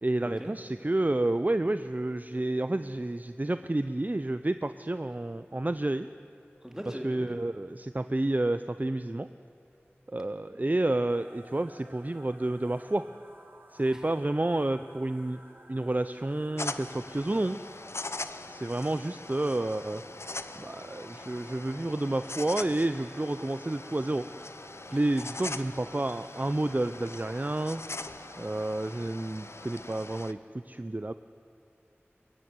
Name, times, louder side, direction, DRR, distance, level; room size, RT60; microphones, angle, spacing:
voice 1, 0.0-6.1 7.0-9.3 10.1-13.0 13.7-15.4 15.7-17.6 18.5-20.0 20.6-24.3 24.9-27.8 28.4-30.4 30.7-31.1, right 2 dB, 40° right, 11 dB, 0.5 m, -30 dB
voice 2, 6.6-7.3 10.5-10.6 13.9-14.0 24.9-25.0, equal, 15° right, 3 dB, 3.0 m, -40 dB
sound 1, 11.1-29.9, right 1 dB, 60° right, 2.3 m, -54 dB
sound 2, 16.6-30.3, left 2 dB, 90° left, 0.7 m, -41 dB
22.0 x 15.5 x 9.6 m, 2.8 s
wide cardioid pair, 40°, 4 cm